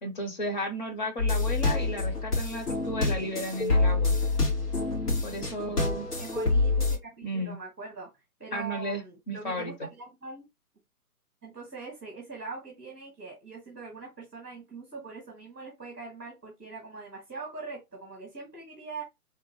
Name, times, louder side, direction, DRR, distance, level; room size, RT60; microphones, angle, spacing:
voice 1, 0.0-4.1 5.2-6.1 7.2-7.6 8.5-9.7, equal, 30° left, 0.8 m, -34 dB
sound 1, 1.2-7.0, left 3 dB, 80° left, 2.4 m, -27 dB
voice 2, 6.2-8.1 8.4-10.5 11.4-19.0, right 4 dB, 5° left, 0.5 m, -42 dB
3.6 x 2.6 x 2.9 m
hypercardioid pair, 145°, 46 cm